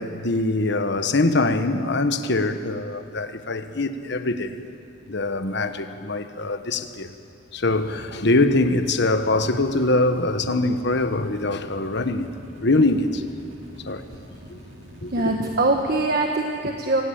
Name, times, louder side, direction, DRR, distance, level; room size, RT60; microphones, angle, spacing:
voice 1, 0.0-4.6 5.1-7.1 7.5-12.3 12.6-13.2 13.9-14.0 15.0-15.1, left 2 dB, 65° left, 1.3 m, -23 dB
sound 1, 7.7-16.0, equal, 80° right, 2.8 m, -44 dB
voice 2, 15.1-17.0, right 2 dB, 55° right, 1.4 m, -22 dB
24.5 x 16.5 x 8.9 m
head